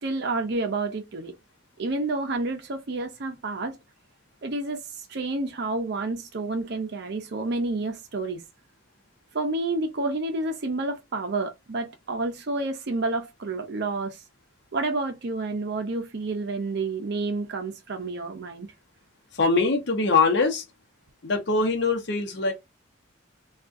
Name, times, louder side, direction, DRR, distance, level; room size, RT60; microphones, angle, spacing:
voice 1, 0.0-1.3 1.8-3.8 4.4-8.4 9.3-14.2 14.7-18.7, right 2 dB, 60° right, 0.6 m, -29 dB
voice 2, 19.3-20.6 21.2-22.5, left 3 dB, 60° left, 0.8 m, -23 dB
3.6 x 2.4 x 2.4 m
head